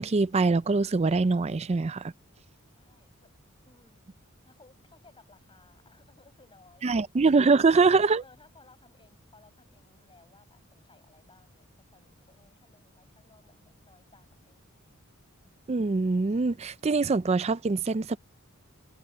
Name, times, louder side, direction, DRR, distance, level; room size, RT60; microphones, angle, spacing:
voice 1, 0.0-2.1 6.8-8.2 15.7-18.2, right 4 dB, 30° right, 0.4 m, -23 dB
voice 2, 2.7-3.3 3.6-4.0 4.4-7.6 8.2-14.7, left 3 dB, 25° left, 5.9 m, -60 dB
head